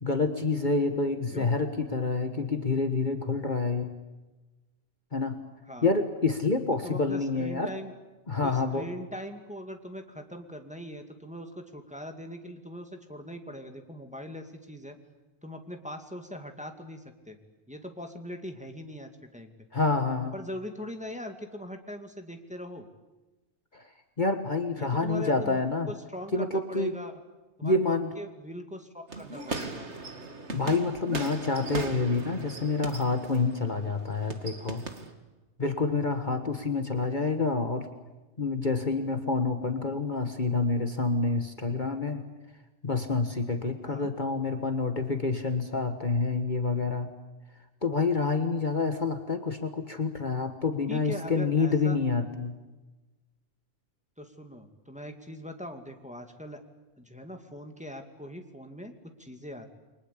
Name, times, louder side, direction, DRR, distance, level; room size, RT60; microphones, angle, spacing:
voice 1, 0.0-3.9 5.1-5.4 5.8-7.7 8.3-8.9 19.7-20.3 23.7-23.9 24.2-25.9 26.3-26.9 27.6-28.1 30.5-34.8 35.6-37.9 38.4-42.2 42.8-47.1 47.8-52.5, left 3 dB, 35° left, 6 dB, 1.7 m, -28 dB
voice 2, 6.8-7.9 8.4-15.0 15.4-17.4 17.7-19.5 20.3-22.9 24.8-25.6 25.9-27.1 27.6-29.9 43.8-44.1 50.9-52.0 54.2-56.6 57.0-59.7, equal, 5° right, 5 dB, 2.3 m, -41 dB
sound 1, 29.1-35.1, right 2 dB, 60° right, 2.5 m, -38 dB
29.5 x 23.5 x 8.4 m, 1.1 s
omnidirectional pair, 1.3 m